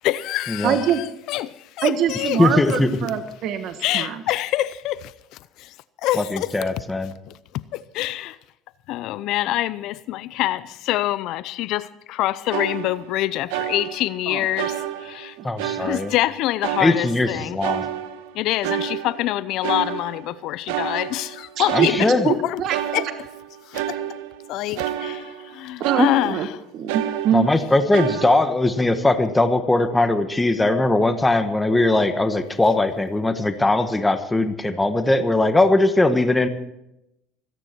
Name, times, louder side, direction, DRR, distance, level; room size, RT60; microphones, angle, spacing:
voice 1, 0.0-2.4 2.7-2.8 3.8-5.8 6.0-6.6 7.3-8.4 8.9-15.4 15.8-17.6 18.3-22.6 22.9-23.1 23.7-24.0 24.5-26.4, left 15 dB, 65° left, 0.6 m, -26 dB
voice 2, 0.6-1.0 1.8-4.2 14.3-14.4 21.6-21.9 22.3-22.8 25.8-26.5 26.7-27.5, right 8 dB, 60° right, 1.2 m, -23 dB
voice 3, 2.4-2.9 6.3-7.1 15.4-16.1 16.8-17.9 21.7-22.3 27.3-36.5, left 2 dB, 10° left, 1.4 m, -20 dB
sound 1, 12.5-13.2 13.5-14.2 14.6-16.3 16.6-17.4 17.6-20.4 20.7-22.4 22.7-25.5 25.8-26.5 26.9-28.5, right 11 dB, 85° right, 1.2 m, -30 dB
26.5 x 10.0 x 4.5 m
supercardioid pair, 90°, 0 cm